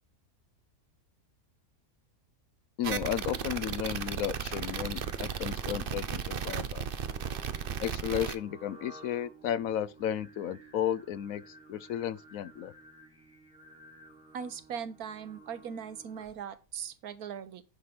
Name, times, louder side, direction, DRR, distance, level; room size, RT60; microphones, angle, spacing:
voice 1, 2.8-6.8 7.8-11.4 11.7-12.7, left 10 dB, 75° left, 1.0 m, -33 dB
sound 1, 2.8-8.4, right 7 dB, 50° right, 0.8 m, -35 dB
Singing, 4.4-16.5, right 2 dB, 5° right, 3.2 m, -54 dB
voice 2, 14.3-17.6, right 7 dB, 90° right, 1.4 m, -40 dB
10.0 x 5.0 x 5.9 m
omnidirectional pair, 1.5 m